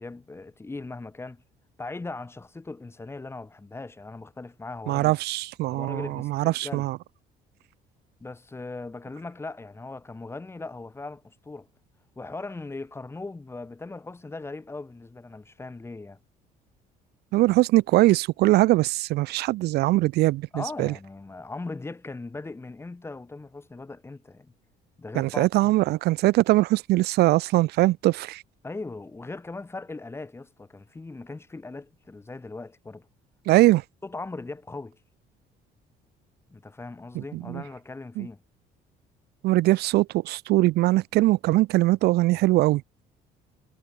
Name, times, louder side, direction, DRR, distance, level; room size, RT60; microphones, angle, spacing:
voice 1, 0.0-1.4 1.8-5.1 5.7-6.9 8.2-11.7 12.2-16.2 20.5-24.5 25.0-25.7 28.6-33.1 34.0-35.0 36.5-38.4, left 3 dB, 15° left, 1.1 m, -39 dB
voice 2, 4.9-7.0 17.3-20.9 25.1-28.4 33.5-33.8 37.1-37.6 38.2-38.3 39.4-42.8, right 18 dB, 75° right, 0.5 m, -22 dB
cardioid pair, 110°, 17 cm